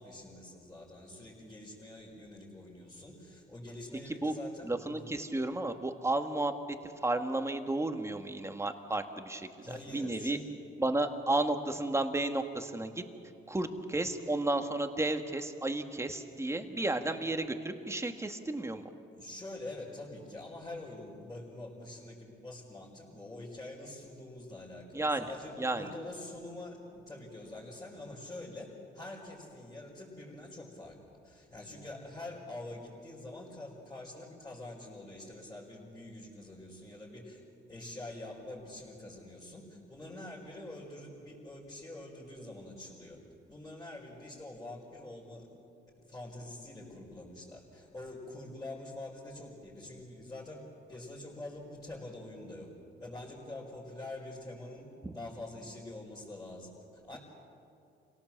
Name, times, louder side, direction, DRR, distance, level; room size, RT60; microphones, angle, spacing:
voice 1, 0.0-5.1 9.6-10.5 19.2-28.7 28.9-31.0 31.2-37.4 37.7-43.2 43.5-45.5 46.1-50.6 50.9-52.7 53.0-54.8 55.1-57.2, left 2 dB, 15° left, -7 dB, 5.2 m, -45 dB
voice 2, 4.6-6.5 6.8-10.4 10.8-13.0 13.5-18.9 24.9-25.3 25.6-25.9 55.0-55.1, right 2 dB, 15° right, 6 dB, 1.7 m, -32 dB
26.5 x 17.5 x 7.5 m, 2.5 s
cardioid pair, 90°, 20 cm